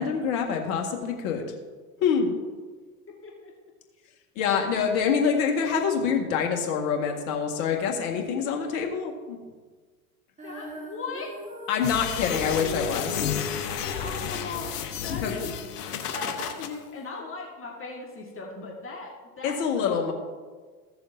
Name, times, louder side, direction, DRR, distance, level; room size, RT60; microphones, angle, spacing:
voice 1, 0.0-1.4 2.0-2.4 4.4-9.4 11.7-13.3 15.2-15.3 19.4-20.1, left 6 dB, 65° left, 2 dB, 1.9 m, -26 dB
voice 2, 10.4-11.3 14.0-15.4 16.0-20.1, left 3 dB, 25° left, -1 dB, 1.9 m, -38 dB
Female singing, 10.4-16.6, equal, 15° right, 2.0 m, -41 dB
sound 1, 11.8-16.7, left 9 dB, 80° left, 1.1 m, -32 dB
15.5 x 7.0 x 2.8 m, 1.4 s
hypercardioid pair, 85°, 47 cm